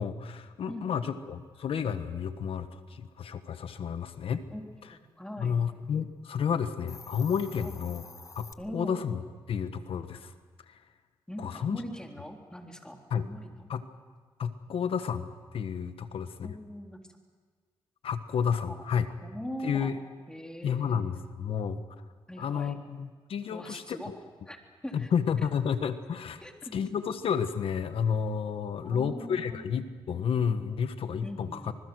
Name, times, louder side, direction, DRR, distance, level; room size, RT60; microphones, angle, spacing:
voice 1, 0.0-4.4 5.4-8.0 8.3-9.2 9.5-10.3 10.7-10.8 11.4-11.8 13.1-13.3 13.7-13.8 14.4-16.5 18.0-19.1 19.6-20.0 20.6-21.8 22.4-24.2 24.9-26.4 26.7-31.6, left 7 dB, 75° left, 10 dB, 1.4 m, -31 dB
voice 2, 0.7-1.2 4.5-5.5 7.6-7.8 8.6-9.0 11.3-13.7 16.4-17.0 18.4-18.8 19.2-19.9 20.3-21.0 22.3-22.8 23.5-24.1 24.5-24.6 24.8-25.1 26.4-26.5 28.8-29.8 31.2-31.8, equal, 10° left, 2 dB, 3.6 m, -41 dB
Hiss, 6.7-8.5, left 4 dB, 35° left, 1.2 m, -48 dB
26.5 x 21.0 x 6.3 m, 1.5 s
cardioid pair, 75°, 10 cm